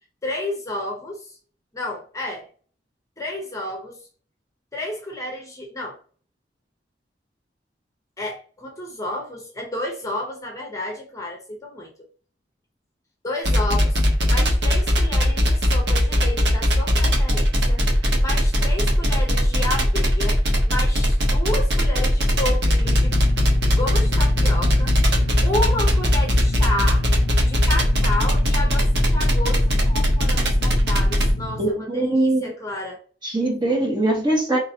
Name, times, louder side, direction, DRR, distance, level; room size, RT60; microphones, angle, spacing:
voice 1, 0.2-1.4 1.7-2.5 3.2-4.1 4.7-6.0 8.2-11.9 13.2-23.2 23.8-27.0 27.5-33.0, left 1 dB, 20° left, 0.9 m, -31 dB
sound 1, 13.4-31.3, equal, 70° right, 1.1 m, -19 dB
sound 2, 22.8-31.7, left 3 dB, 65° left, 0.4 m, -30 dB
voice 2, 31.6-32.5 33.2-34.6, right 2 dB, 25° right, 1.5 m, -21 dB
4.6 x 3.3 x 2.8 m
head